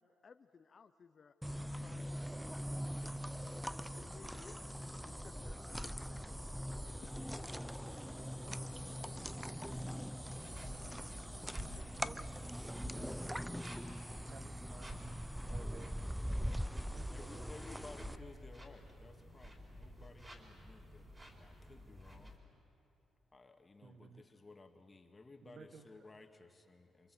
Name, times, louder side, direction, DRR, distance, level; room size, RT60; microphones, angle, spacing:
voice 1, 0.0-3.4 4.0-4.6 5.1-6.4 6.8-8.5, left 5 dB, 40° left, 10 dB, 0.8 m, -60 dB
sound 1, 1.4-18.2, equal, ahead, 0.6 m, -42 dB
sound 2, 10.3-22.4, equal, 20° right, 4.3 m, -51 dB
voice 2, 12.0-12.9 14.2-15.0 15.4-16.1 16.9-17.5 23.8-24.2 25.4-25.9, right 5 dB, 55° right, 9 dB, 1.5 m, -56 dB
voice 3, 17.1-22.5 23.3-27.1, left 3 dB, 25° left, 4 dB, 2.1 m, -57 dB
28.0 x 25.5 x 7.9 m, 2.8 s
cardioid pair, 115°, 0 cm